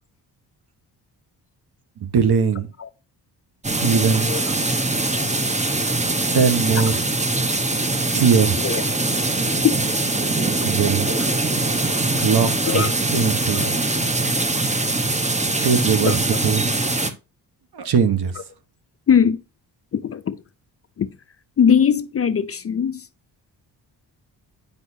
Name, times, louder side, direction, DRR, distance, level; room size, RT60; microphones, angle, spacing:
voice 1, 2.0-2.7 3.8-4.4 6.3-7.0 8.1-8.6 10.6-11.1 12.2-12.9 13.1-13.7 15.6-16.7 17.7-18.4, right 6 dB, 65° right, 1.2 m, -20 dB
sound 1, 3.6-17.1, right 2 dB, 15° right, 0.9 m, -22 dB
voice 2, 19.1-19.4 19.9-20.4 21.0-21.1 21.6-23.1, left 7 dB, 35° left, 0.5 m, -20 dB
8.3 x 5.5 x 2.7 m
cardioid pair, 70°, 43 cm